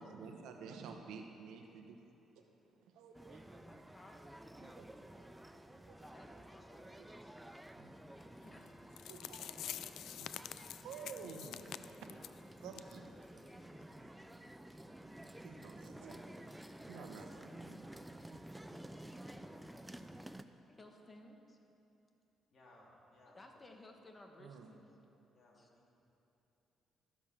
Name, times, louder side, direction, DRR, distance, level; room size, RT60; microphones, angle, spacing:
voice 1, 0.0-2.0 2.4-2.5 2.8-3.8 4.6-6.4 7.4-7.9 9.1-9.7 10.2-10.3 10.8-11.9 12.6-13.1 14.0-14.1 15.4-16.4 16.9-17.8 24.4-24.7, right 5 dB, 90° right, 4 dB, 1.0 m, -52 dB
sound 1, 3.1-20.4, right 1 dB, 5° right, 0.5 m, -52 dB
voice 2, 3.6-4.8 6.1-10.9 13.2-13.6 16.5-17.1 18.6-21.6 23.3-25.0 25.5-25.7, left 1 dB, 25° left, 3 dB, 1.3 m, -62 dB
sound 2, 8.7-8.8 9.0-12.4 12.7-12.9 13.2-13.3 13.8-13.9, left 11 dB, 80° left, 0.3 m, -46 dB
voice 3, 22.5-23.6 25.3-26.0, left 1 dB, 50° left, -4 dB, 2.9 m, -64 dB
13.0 x 7.1 x 5.7 m, 3.0 s
cardioid pair, 90°, 0 cm